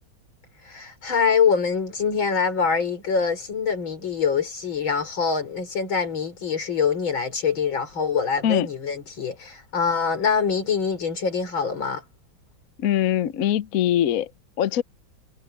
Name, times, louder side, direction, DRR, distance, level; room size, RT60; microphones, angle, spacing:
voice 1, 0.6-12.0, left 6 dB, 85° left, 4.9 m, -24 dB
voice 2, 12.8-14.3 14.6-14.8, left 11 dB, 60° left, 1.0 m, -22 dB
omnidirectional pair, 2.1 m